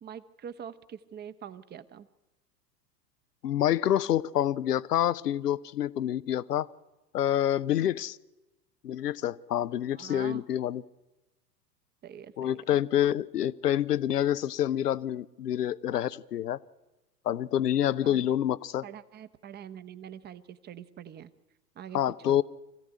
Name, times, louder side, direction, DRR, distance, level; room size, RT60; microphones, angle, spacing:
voice 1, 0.0-2.1 7.8-7.9 9.9-10.4 12.0-12.8 18.0-18.3 18.8-21.3 21.7-22.0 22.3-22.4, right 9 dB, 20° right, 13 dB, 1.0 m, -44 dB
voice 2, 3.4-6.7 7.1-8.2 8.8-10.8 12.4-16.6 17.3-18.8 21.9-22.4, left 11 dB, 70° left, 19 dB, 0.9 m, -27 dB
25.0 x 15.5 x 9.8 m, 1.0 s
figure-of-eight pair, 90°, 50 cm